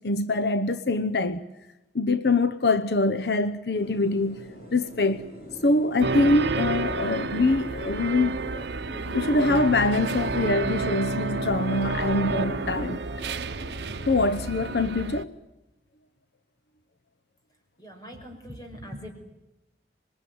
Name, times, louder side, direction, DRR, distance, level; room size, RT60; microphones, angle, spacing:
voice 1, 0.0-1.4 1.9-5.3 5.6-8.7 9.1-13.0 14.1-15.3, left 2 dB, 70° left, 0.9 m, -24 dB
sound 1, 3.7-14.8, equal, 50° left, 7.4 m, -42 dB
sound 2, 6.0-15.2, right 3 dB, 80° right, 1.0 m, -30 dB
voice 2, 17.8-19.1, equal, 20° left, 5.6 m, -41 dB
26.0 x 22.5 x 9.5 m
head